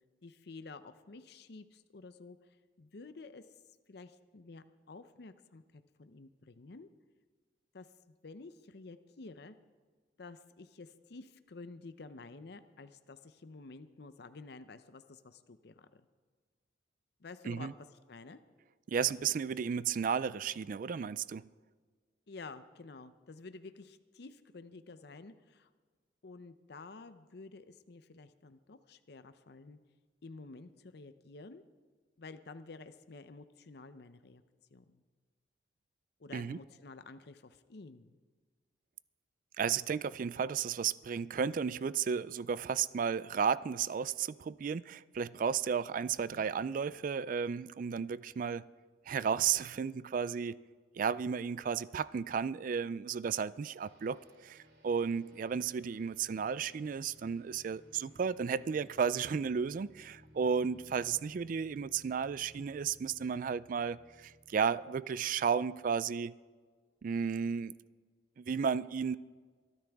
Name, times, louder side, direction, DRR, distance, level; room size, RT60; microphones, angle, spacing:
voice 1, 0.2-2.4 2.8-3.5 3.9-6.9 7.7-7.9 8.2-9.6 10.2-16.0 17.2-17.7 18.1-18.4 22.3-25.7 26.2-29.8 30.2-31.6 32.2-34.4 34.7-35.0 36.2-38.2 46.3-46.5, left 3 dB, 60° left, 0.6 m, -51 dB
voice 2, 18.9-21.5 36.3-36.6 39.6-48.7 49.1-50.6 50.9-66.3 67.0-67.8 68.4-69.2, right 6 dB, 45° right, 0.3 m, -33 dB
sound 1, 53.8-66.0, equal, 65° right, 2.7 m, -61 dB
23.0 x 12.0 x 3.5 m
head